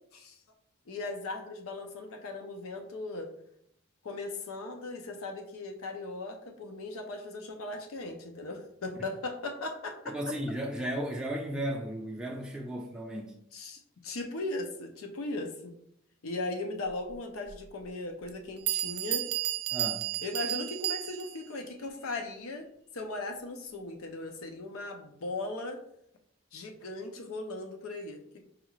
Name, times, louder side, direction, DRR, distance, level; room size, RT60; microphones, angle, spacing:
voice 1, 0.9-3.3 4.0-10.2 13.5-15.8 16.2-19.3 20.2-22.7 22.9-25.8 26.5-28.4, left 2 dB, 80° left, 0.6 m, -38 dB
voice 2, 10.1-13.4 19.7-20.1, right 1 dB, 5° right, 0.4 m, -35 dB
Bell, 17.5-17.6 18.3-18.4 18.7-21.5, right 15 dB, 75° right, 0.3 m, -32 dB
4.8 x 2.3 x 3.1 m
head